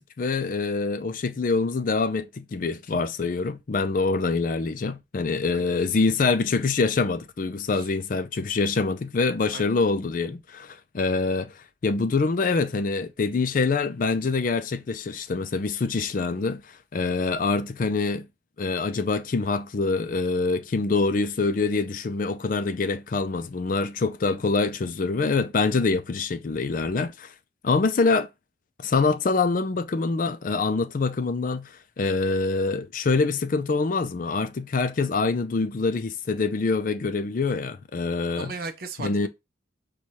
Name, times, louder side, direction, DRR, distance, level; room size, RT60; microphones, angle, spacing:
voice 1, 0.0-11.5 11.8-18.3 18.6-27.3 27.6-28.3 28.8-38.5 39.0-39.3, left 4 dB, 45° left, 0.4 m, -25 dB
voice 2, 9.5-9.8 38.4-39.3, right 4 dB, 50° right, 0.5 m, -37 dB
4.7 x 2.3 x 4.0 m
head